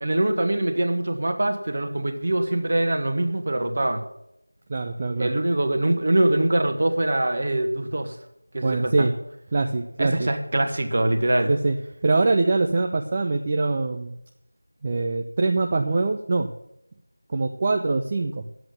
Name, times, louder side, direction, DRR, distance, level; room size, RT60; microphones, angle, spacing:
voice 1, 0.0-4.0 5.2-8.1 8.5-9.0 10.0-11.5, right 1 dB, 35° right, 7 dB, 1.4 m, -23 dB
voice 2, 4.7-5.3 8.6-9.1 9.5-10.3 11.5-11.8 12.0-14.2 14.8-16.5 17.3-18.4, right 3 dB, 20° right, 3 dB, 0.5 m, -23 dB
10.5 x 7.8 x 8.3 m, 0.80 s
figure-of-eight pair, 170°, 0 cm